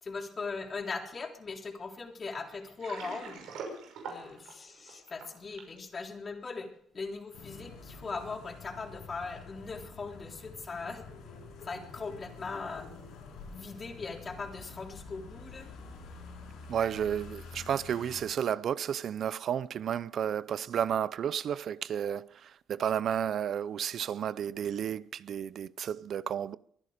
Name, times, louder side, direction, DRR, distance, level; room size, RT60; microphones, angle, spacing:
voice 1, 0.0-3.5 4.1-6.7 6.9-11.0 11.6-12.8 13.5-15.7, left 4 dB, 40° left, 3.6 m, -39 dB
Water, 2.6-5.8, right 4 dB, 90° right, 5.9 m, -43 dB
sound 1, 7.3-18.2, left 4 dB, 85° left, 7.1 m, -48 dB
voice 2, 16.7-26.6, right 9 dB, 65° right, 0.5 m, -32 dB
23.0 x 11.0 x 5.1 m
cardioid pair, 90°, 0 cm